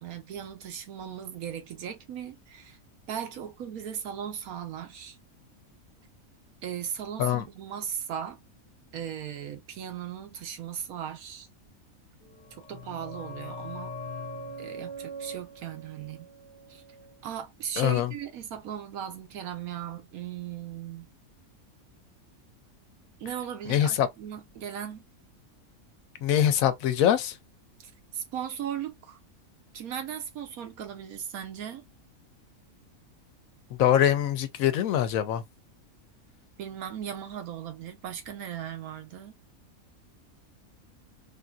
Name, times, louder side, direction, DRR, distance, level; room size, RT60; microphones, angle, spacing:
voice 1, 0.0-2.8 3.1-5.2 6.6-8.4 8.9-11.5 12.5-13.9 14.6-16.3 16.7-16.8 17.2-21.1 23.2-25.0 27.8-29.2 29.7-31.9 36.6-39.3, right 9 dB, 85° right, 1.3 m, -37 dB
sound 1, 12.3-17.7 18.0-18.1, equal, 40° left, 1.0 m, -42 dB
voice 2, 17.8-18.1 23.7-24.1 26.2-27.3 33.8-35.4, left 10 dB, 75° left, 1.0 m, -23 dB
3.5 x 2.7 x 2.3 m
omnidirectional pair, 1.5 m